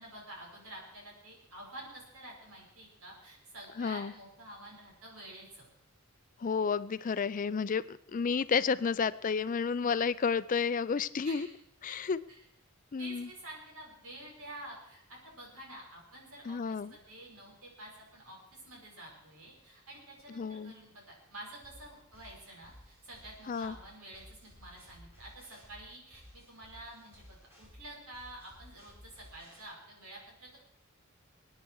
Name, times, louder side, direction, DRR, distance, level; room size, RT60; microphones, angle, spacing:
voice 1, 0.0-5.7 11.2-11.5 11.9-12.0 12.3-12.5 13.0-30.6, right 1 dB, 80° right, -1 dB, 5.4 m, -49 dB
voice 2, 3.8-4.1 6.4-11.5 11.8-12.2 12.9-13.3 16.5-16.9 20.4-20.7 23.5-23.7, left 5 dB, 40° left, 16 dB, 0.4 m, -31 dB
sound 1, 21.6-29.6, equal, 10° right, 5.3 m, -56 dB
22.0 x 9.4 x 4.7 m, 0.77 s
head